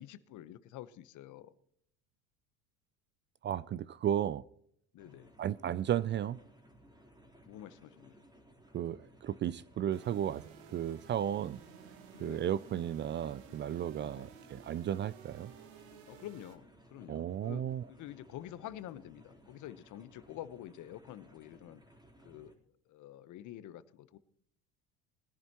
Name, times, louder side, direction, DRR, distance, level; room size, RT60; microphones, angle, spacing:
voice 1, 0.0-1.5 4.9-5.3 7.4-8.2 12.1-12.4 14.0-14.3 16.1-21.8 22.2-22.5 22.9-24.2, left 13 dB, 55° left, 1.0 m, -48 dB
voice 2, 3.4-4.4 5.4-6.4 8.7-10.4 10.7-11.6 12.2-15.5 17.1-17.9, right 10 dB, 35° right, 0.4 m, -34 dB
sound 1, 5.0-22.5, equal, 10° right, 3.6 m, -60 dB
sound 2, 9.9-16.6, right 7 dB, 80° right, 1.7 m, -55 dB
21.0 x 10.5 x 2.9 m
supercardioid pair, 100°, 35 cm